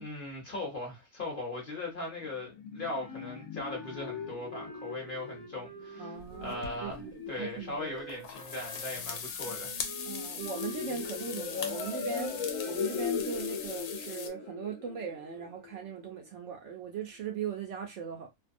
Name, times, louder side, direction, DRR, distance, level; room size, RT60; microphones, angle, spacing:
voice 1, 0.0-6.2 6.4-9.8, left 2 dB, 40° left, 0.9 m, -39 dB
sound 1, 2.2-16.2, left 7 dB, 70° left, 0.9 m, -40 dB
Wind instrument woodwind instrument, 2.9-7.0 7.7-13.2, right 4 dB, 40° right, 0.5 m, -49 dB
voice 2, 6.0-7.9 10.0-18.3, right 7 dB, 65° right, 0.8 m, -39 dB
sound 2, 6.2-7.0 8.0-14.3, left 6 dB, 90° left, 1.1 m, -41 dB
2.6 x 2.2 x 2.5 m
omnidirectional pair, 1.5 m